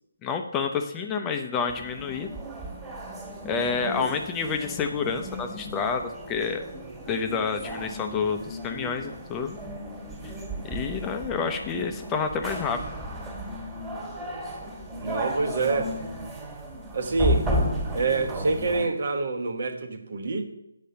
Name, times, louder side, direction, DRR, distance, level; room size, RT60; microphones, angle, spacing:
voice 1, 0.2-2.4 3.4-6.6 7.1-9.6 10.6-12.8, left 5 dB, 15° left, 5 dB, 0.6 m, -29 dB
sound 1, 1.7-18.9, equal, 10° right, 1.7 m, -34 dB
voice 2, 15.0-15.9 16.9-17.5 17.9-20.4, right 3 dB, 55° right, 6 dB, 1.2 m, -26 dB
8.4 x 5.2 x 6.8 m, 0.84 s
hypercardioid pair, 160°, 0 cm